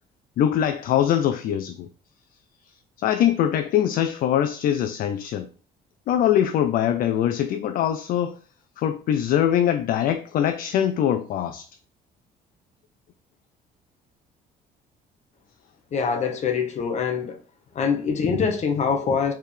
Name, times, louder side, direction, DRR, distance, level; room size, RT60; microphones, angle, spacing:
voice 1, 0.4-1.9 3.0-5.5 6.1-8.4 8.8-11.7, left 10 dB, 60° left, 0.4 m, -22 dB
voice 2, 15.9-17.4 17.7-19.3, left 6 dB, 45° left, 0.9 m, -24 dB
4.5 x 3.5 x 3.2 m
cardioid pair, 110°, 17 cm